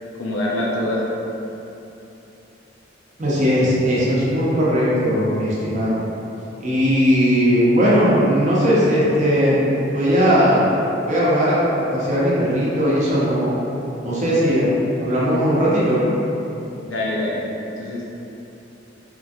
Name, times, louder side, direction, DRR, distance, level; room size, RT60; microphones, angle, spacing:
voice 1, 0.2-1.0 16.8-17.4 17.8-18.1, left 1 dB, 90° left, -4 dB, 0.5 m, -24 dB
voice 2, 3.2-6.0 6.6-10.6 11.1-13.6 14.0-16.0, equal, 40° right, -8 dB, 0.7 m, -18 dB
3.0 x 2.4 x 2.6 m, 2.9 s
head